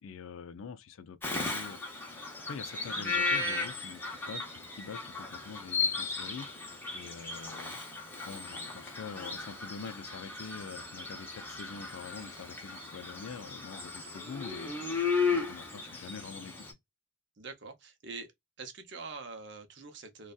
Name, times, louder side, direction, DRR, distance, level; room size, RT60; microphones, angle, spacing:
voice 1, 0.0-1.8 2.4-14.7 15.3-16.7, left 6 dB, 75° left, 0.4 m, -45 dB
Bird vocalization bird call bird song, 1.2-16.7, left 4 dB, 10° left, 0.7 m, -35 dB
voice 2, 17.4-18.3 18.6-20.3, right 4 dB, 55° right, 0.6 m, -44 dB
2.6 x 2.3 x 2.3 m
head